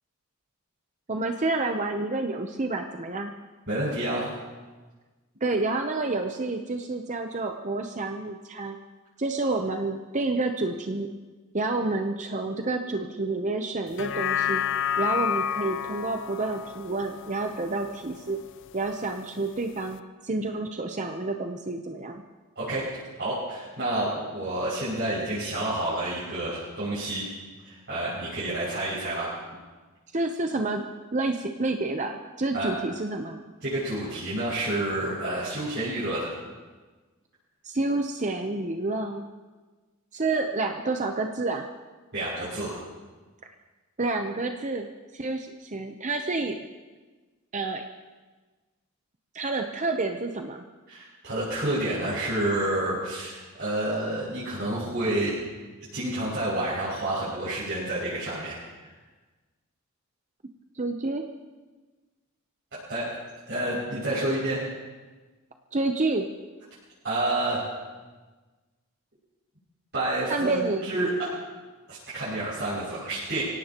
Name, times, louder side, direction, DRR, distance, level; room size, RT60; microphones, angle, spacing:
voice 1, 1.1-3.3 5.4-8.8 9.2-11.1 11.5-14.6 15.0-18.4 18.7-22.2 30.1-30.8 31.1-33.4 37.6-39.3 40.1-41.7 44.0-44.9 45.1-46.7 47.5-47.8 49.3-50.6 60.7-61.2 65.7-66.3 70.3-70.9, right 2 dB, 35° right, 4 dB, 0.7 m, -29 dB
voice 2, 3.7-4.3 22.6-22.9 23.2-27.2 27.6-29.3 32.5-32.7 33.6-36.3 42.1-42.8 50.9-55.3 55.9-58.6 62.9-63.2 63.5-64.6 67.0-67.6 69.9-71.3 71.9-73.4, right 1 dB, 50° right, -11 dB, 6.4 m, -29 dB
sound 1, 13.9-18.4 18.9-19.0, left 8 dB, 55° left, 0.5 m, -30 dB
24.5 x 17.5 x 3.0 m, 1.3 s
head